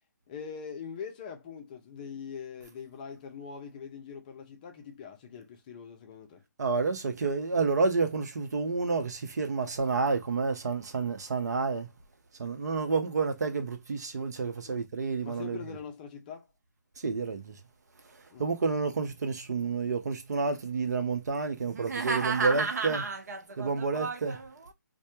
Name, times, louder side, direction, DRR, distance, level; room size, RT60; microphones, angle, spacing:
voice 1, 0.3-6.4 14.6-14.8 15.2-16.5 18.3-18.4, left 6 dB, 30° left, 0.5 m, -42 dB
voice 2, 6.6-11.9 12.4-15.8 17.0-17.6 18.4-24.7, right 4 dB, 60° right, 0.6 m, -29 dB
2.1 x 2.0 x 2.9 m
figure-of-eight pair, 140°, 10 cm